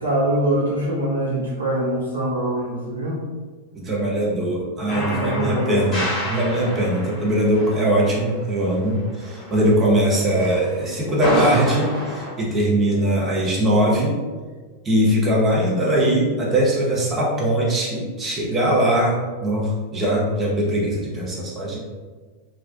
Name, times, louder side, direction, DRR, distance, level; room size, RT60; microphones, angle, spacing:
voice 1, 0.0-3.3 4.9-5.9, right 1 dB, 80° right, -7 dB, 0.7 m, -24 dB
voice 2, 3.7-14.2 14.8-21.8, right 1 dB, 20° right, -4 dB, 0.7 m, -21 dB
sound 1, 4.9-9.9 10.4-12.3, equal, 15° left, 1.1 m, -29 dB
2.3 x 2.1 x 2.4 m, 1.4 s
figure-of-eight pair, 90°, 0 cm